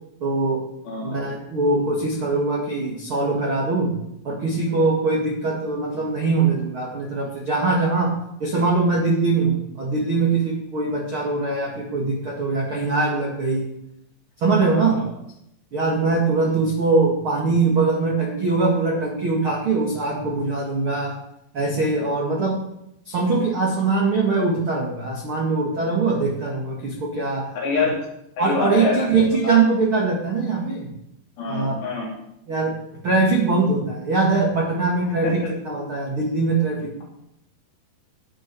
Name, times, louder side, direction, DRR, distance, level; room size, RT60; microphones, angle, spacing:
voice 1, 0.2-0.6 1.0-4.0 4.2-8.1 8.4-13.6 14.4-15.0 15.7-21.1 21.5-22.6 23.0-27.5 28.4-30.9 31.5-31.8 32.5-32.8 33.0-36.9, right 3 dB, 55° right, -2 dB, 1.4 m, -22 dB
voice 2, 0.9-1.2 14.7-15.1 27.6-27.9 28.4-29.1 29.4-29.6 31.4-32.1 35.2-35.5, left 4 dB, 65° left, -3 dB, 5.2 m, -26 dB
19.5 x 7.0 x 4.7 m, 0.81 s
omnidirectional pair, 5.6 m